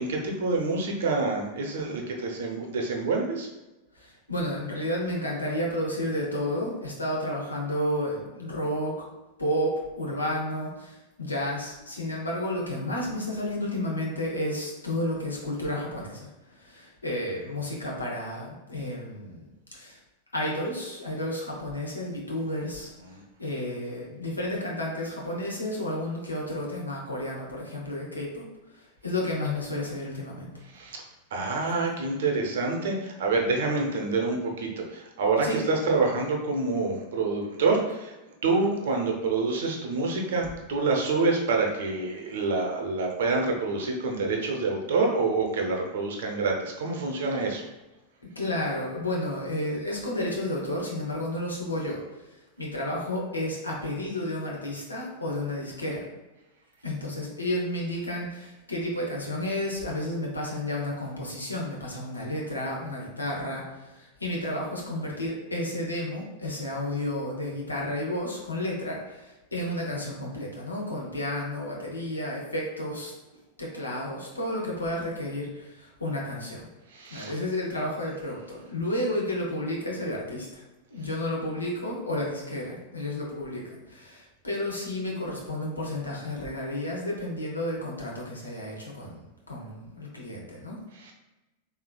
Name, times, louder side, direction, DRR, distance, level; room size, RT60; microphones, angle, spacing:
voice 1, 0.0-3.5 23.1-23.2 30.7-31.0 31.3-38.1 38.4-47.6 76.9-77.3 91.0-91.1, right 3 dB, 60° right, 1 dB, 0.6 m, -27 dB
voice 2, 3.9-9.1 9.4-20.0 20.3-22.9 23.4-30.5 31.7-31.8 35.4-35.6 48.3-56.1 56.8-73.1 73.6-76.7 77.1-80.6 80.9-90.8, left 1 dB, 80° left, -2 dB, 0.8 m, -32 dB
3.5 x 3.3 x 2.2 m, 1.0 s
figure-of-eight pair, 90°, 0 cm